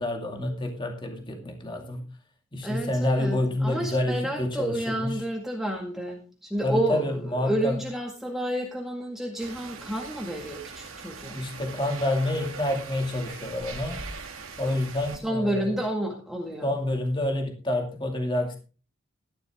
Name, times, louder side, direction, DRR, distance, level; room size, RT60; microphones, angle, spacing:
voice 1, 0.0-2.1 2.5-5.2 6.6-7.8 11.3-14.0 14.6-15.6 16.6-18.6, left 1 dB, 25° left, 3 dB, 2.3 m, -28 dB
voice 2, 2.6-11.4 15.2-16.8, right 1 dB, ahead, 0 dB, 1.8 m, -30 dB
sound 1, 9.4-15.2, right 4 dB, 75° right, 2.6 m, -41 dB
13.5 x 11.0 x 3.7 m, 0.35 s
head